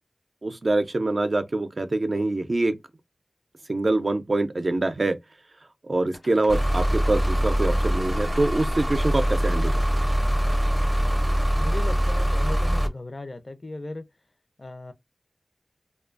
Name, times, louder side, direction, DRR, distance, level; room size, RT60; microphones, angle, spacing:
voice 1, 0.4-2.8 3.7-5.2 5.6-9.8, right 2 dB, 65° right, 0.4 m, -25 dB
sound 1, 6.1-11.0, left 1 dB, 80° left, 1.0 m, -49 dB
sound 2, 6.5-12.9, equal, 10° right, 0.5 m, -23 dB
voice 2, 11.6-14.1 14.6-14.9, left 2 dB, 60° left, 0.4 m, -37 dB
2.5 x 2.3 x 2.4 m
wide cardioid pair, 45°, 0 cm